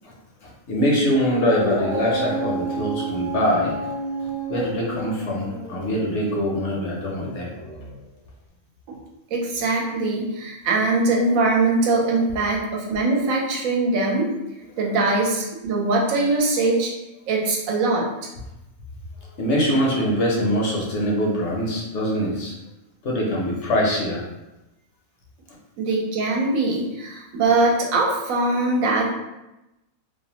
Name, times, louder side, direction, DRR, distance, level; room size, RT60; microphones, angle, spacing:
voice 1, 0.4-3.9 4.2-7.5 19.4-22.5 23.0-24.2, equal, 65° left, -2 dB, 0.8 m, -23 dB
Dog, 1.3-8.0, right 3 dB, 50° right, 0.7 m, -31 dB
voice 2, 9.3-14.3 14.8-16.9 17.3-18.1 25.8-29.1, right 3 dB, 80° right, -1 dB, 1.0 m, -22 dB
2.6 x 2.0 x 2.8 m, 0.96 s
omnidirectional pair, 1.4 m